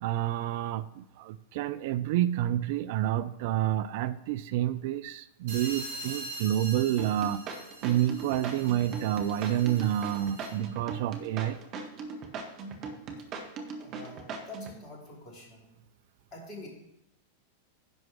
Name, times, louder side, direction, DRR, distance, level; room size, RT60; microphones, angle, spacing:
voice 1, 0.0-7.4 7.8-11.6 13.3-13.4, right 12 dB, 50° right, 14 dB, 0.3 m, -29 dB
sound 1, 5.5-10.7, right 2 dB, 65° right, 4.0 m, -43 dB
sound 2, 7.0-14.8, right 4 dB, 35° right, 1.4 m, -39 dB
voice 2, 13.8-15.8 16.3-16.7, left 1 dB, 30° left, -1 dB, 3.1 m, -46 dB
10.5 x 4.5 x 6.1 m, 0.85 s
figure-of-eight pair, 90°, 0 cm